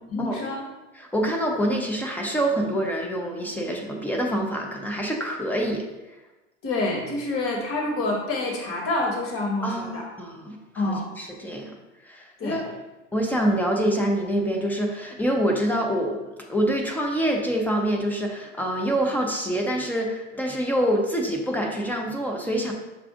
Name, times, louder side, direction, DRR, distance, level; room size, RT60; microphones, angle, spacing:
voice 1, 0.1-0.6 6.6-10.1 10.7-11.0 12.4-12.6, left 2 dB, 35° left, 1 dB, 1.2 m, -27 dB
voice 2, 1.0-5.9 9.6-11.7 12.0-12.7 13.1-22.7, equal, 5° left, 1 dB, 0.4 m, -26 dB
6.0 x 2.4 x 3.6 m, 1.1 s
hypercardioid pair, 110°, 38 cm